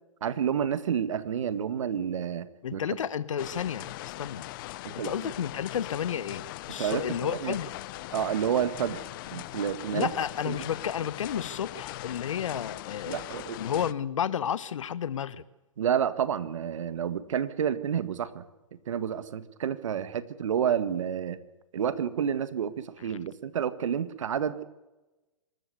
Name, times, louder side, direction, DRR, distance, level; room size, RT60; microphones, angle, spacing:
voice 1, 0.2-2.8 4.8-5.3 6.8-7.6 8.1-9.0 9.3-10.1 10.4-10.6 13.1-13.6 15.8-18.4 18.9-21.4 21.7-24.6, right 8 dB, 65° right, 1.8 m, -29 dB
voice 2, 2.6-4.5 4.8-7.7 9.9-13.2 13.5-15.4 23.0-23.2, left 8 dB, 65° left, 1.1 m, -32 dB
sound 1, 3.4-13.9, left 17 dB, 40° left, 0.8 m, -40 dB
26.5 x 13.5 x 8.2 m
hypercardioid pair, 125°, 18 cm